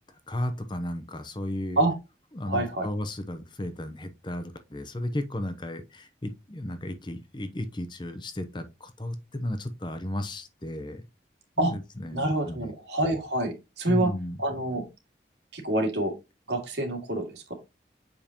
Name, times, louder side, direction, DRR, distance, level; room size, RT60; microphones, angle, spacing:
voice 1, 0.3-1.8 2.3-11.0 11.6-12.7 13.9-14.4, left 1 dB, 25° left, 0.7 m, -34 dB
voice 2, 2.5-2.9 11.6-11.7 12.1-14.1 14.4-14.8 15.5-16.1 16.5-17.5, right 1 dB, 80° right, 2.1 m, -27 dB
7.2 x 5.2 x 2.9 m
head